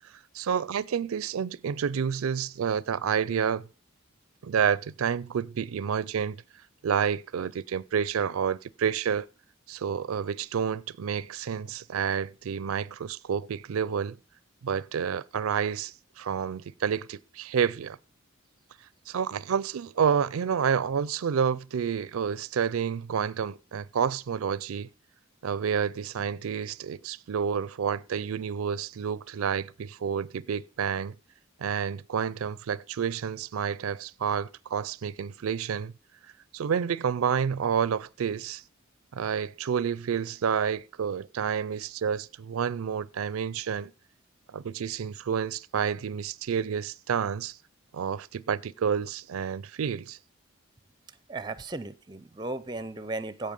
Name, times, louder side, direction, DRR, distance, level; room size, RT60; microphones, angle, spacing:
voice 1, 0.3-3.6 4.4-6.4 6.8-9.3 9.7-14.2 14.6-18.0 19.1-24.9 25.4-31.1 31.6-35.9 36.5-38.6 39.1-43.9 44.5-47.6 47.9-50.2, right 7 dB, 90° right, 0.4 m, -29 dB
voice 2, 51.3-53.5, right 2 dB, 20° right, 0.5 m, -35 dB
16.0 x 5.5 x 5.3 m
head